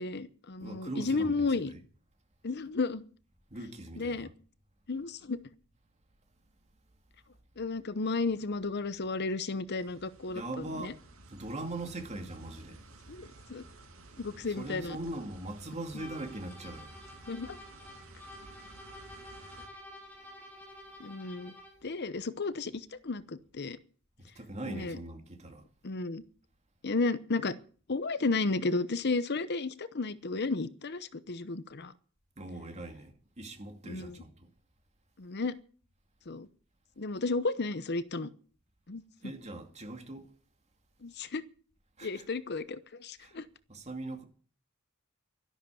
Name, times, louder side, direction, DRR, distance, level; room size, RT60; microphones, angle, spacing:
voice 1, 0.0-1.7 2.4-3.0 4.0-4.3 4.9-5.4 7.6-10.9 13.1-13.6 14.2-15.0 17.3-17.6 21.0-21.5 21.8-23.8 24.7-25.0 25.8-26.2 26.8-27.6 27.9-31.9 33.8-34.2 35.2-35.6 36.3-36.5 37.0-38.3 38.9-39.0 41.0-41.4 42.0-43.5, left 3 dB, 50° left, 0.8 m, -33 dB
voice 2, 0.6-1.8 3.5-4.3 10.3-11.0 11.3-12.8 14.5-16.9 24.2-25.6 32.4-34.5 39.2-40.3 42.0-42.2 43.2-43.4 43.7-44.2, right 2 dB, 30° right, 2.4 m, -41 dB
sound 1, 9.8-19.7, right 2 dB, 75° right, 2.6 m, -53 dB
sound 2, 15.9-21.9, left 1 dB, 10° left, 5.5 m, -50 dB
13.0 x 12.0 x 7.1 m
head